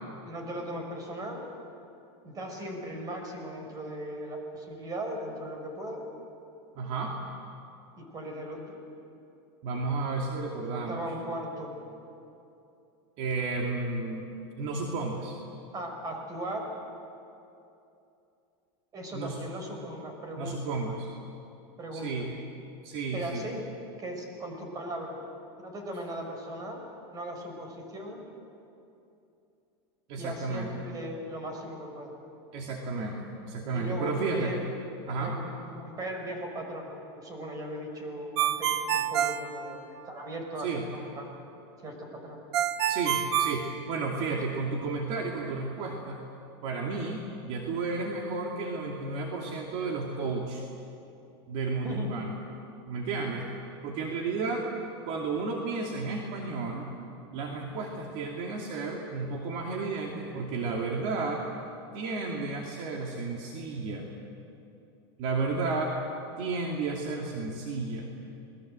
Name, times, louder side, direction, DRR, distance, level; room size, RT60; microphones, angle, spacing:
voice 1, 0.2-1.4 2.2-6.0 8.0-8.8 10.4-11.7 15.7-16.7 18.9-20.6 21.8-22.3 23.1-23.7 24.0-25.2 25.6-26.8 27.1-28.2 30.2-32.1 33.7-34.6 35.2-41.3 41.8-42.4 51.8-52.2 54.5-54.7, right 1 dB, 25° right, 3 dB, 5.7 m, -38 dB
voice 2, 6.7-7.2 9.6-11.1 13.2-14.2 14.6-15.4 19.1-19.4 20.4-21.1 21.9-22.3 22.8-23.4 30.1-30.8 32.5-34.5 35.1-35.4 40.6-40.9 42.9-46.2 46.6-50.6 51.5-52.4 52.9-53.5 53.8-54.7 55.1-56.9 57.3-61.4 61.9-64.1 65.2-65.9 66.4-68.1, right 3 dB, 55° right, 0 dB, 2.7 m, -32 dB
Ringtone, 38.4-40.3 42.5-44.4, right 10 dB, 80° right, 1.3 m, -28 dB
28.0 x 21.0 x 7.9 m, 2.7 s
supercardioid pair, 145°, 14 cm